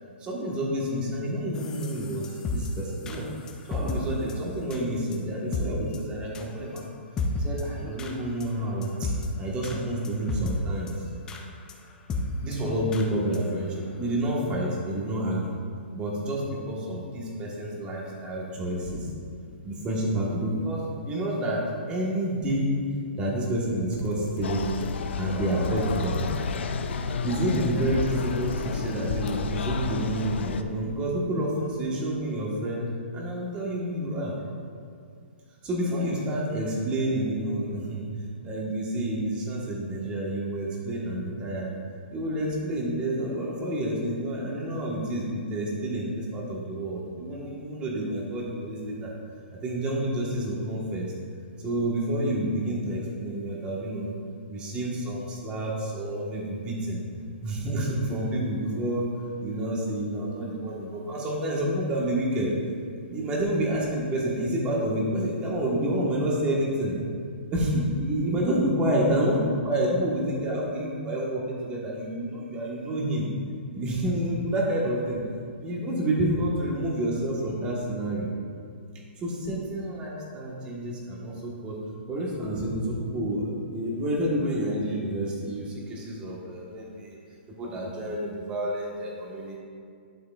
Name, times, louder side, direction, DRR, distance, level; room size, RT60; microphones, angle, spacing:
voice 1, 0.2-3.3 3.7-6.8 7.4-9.1 9.4-11.1 12.4-15.5 15.9-19.1 19.6-22.7 23.2-24.7 25.2-26.3 27.2-32.9 33.1-34.3 35.6-38.1 38.4-41.7 42.1-49.1 49.6-51.1 51.6-54.1 54.5-57.0 57.4-59.1 59.4-62.5 63.1-66.9 67.5-73.3 73.7-75.2 75.6-78.3 79.2-87.2 87.5-89.6, right 1 dB, 15° right, -3 dB, 1.3 m, -29 dB
sound 1, 1.5-4.0 4.3-4.4 4.7-4.8 5.1-5.2 5.5-5.6 5.9-6.0 6.3-6.4 6.8-6.9 7.2-7.6 8.0-8.1 8.4-8.5 8.8-9.3 9.6-9.8 10.0-10.6 10.9-11.0 11.3-11.4 11.7-11.8 12.1-12.2 12.5-12.6 12.9-13.1 13.3-13.4 13.8-13.9, left 3 dB, 10° left, 0.5 m, -31 dB
sound 2, 23.9-30.1, left 3 dB, 35° left, 1.0 m, -40 dB
sound 3, 24.4-30.6, left 5 dB, 65° left, 0.5 m, -31 dB
11.5 x 6.3 x 2.4 m, 2.2 s
hypercardioid pair, 160°, 6 cm